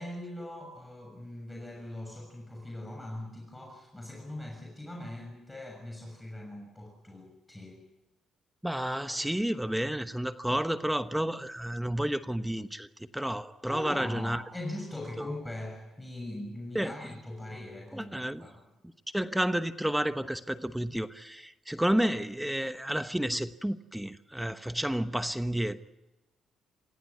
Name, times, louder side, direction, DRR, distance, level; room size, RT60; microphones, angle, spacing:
voice 1, 0.0-7.8 13.7-18.6, left 1 dB, 10° left, 6.5 m, -41 dB
voice 2, 8.6-14.4 15.2-15.3 16.7-16.9 17.9-18.5 19.1-25.8, right 1 dB, 5° right, 1.1 m, -31 dB
27.5 x 16.0 x 9.6 m
cardioid pair, 90°, 0 cm